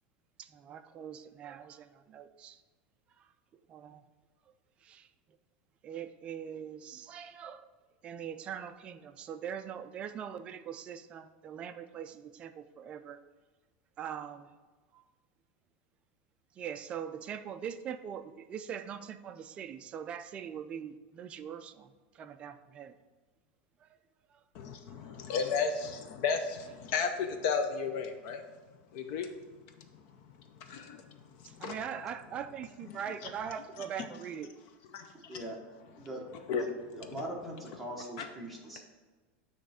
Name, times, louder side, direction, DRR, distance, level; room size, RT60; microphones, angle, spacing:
voice 1, 0.4-2.6 3.2-3.3 3.5-4.0 4.8-5.1 5.8-7.7 8.0-13.2 14.0-14.5 14.9-15.0 16.5-23.0 23.8-24.0 24.3-24.4 25.0-25.1 31.4-34.5, right 8 dB, 20° right, 9 dB, 0.3 m, -42 dB
voice 2, 24.5-28.4 28.9-29.3 30.7-31.0 31.6-31.7 34.9-35.4 36.5-36.6, left 5 dB, 45° left, 7 dB, 0.5 m, -33 dB
voice 3, 36.6-38.8, right 1 dB, ahead, -3 dB, 1.0 m, -41 dB
8.9 x 3.2 x 4.9 m, 1.4 s
supercardioid pair, 170°, 5 cm